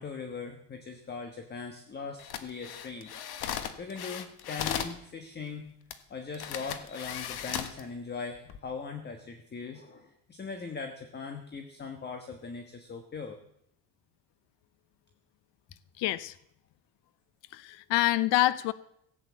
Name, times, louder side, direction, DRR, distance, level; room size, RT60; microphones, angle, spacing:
voice 1, 0.0-3.1 3.8-5.7 6.1-13.4, left 5 dB, 25° left, 6 dB, 1.3 m, -40 dB
sound 1, 2.2-5.0 5.9-6.0 6.3-7.8 8.4-8.6, left 9 dB, 65° left, 1.5 m, -36 dB
voice 2, 16.0-16.4 17.5-18.7, left 16 dB, 90° left, 16 dB, 0.7 m, -26 dB
16.0 x 8.6 x 8.3 m, 0.75 s
cardioid pair, 150°, 41 cm